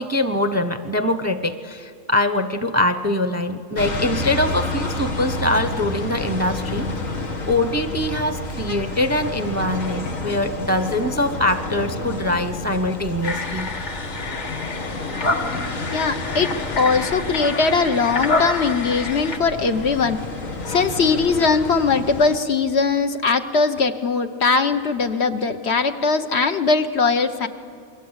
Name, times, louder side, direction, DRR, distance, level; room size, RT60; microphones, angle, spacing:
voice 1, 0.0-13.7, left 1 dB, 15° right, 9 dB, 0.7 m, -23 dB
sound 1, 3.7-22.4, left 2 dB, 90° left, 2.3 m, -30 dB
sound 2, 13.2-19.4, left 3 dB, 35° left, 1.3 m, -28 dB
voice 2, 15.9-20.2 20.7-27.5, left 4 dB, 55° left, 7 dB, 1.2 m, -20 dB
28.5 x 22.0 x 8.1 m, 2.5 s
omnidirectional pair, 1.3 m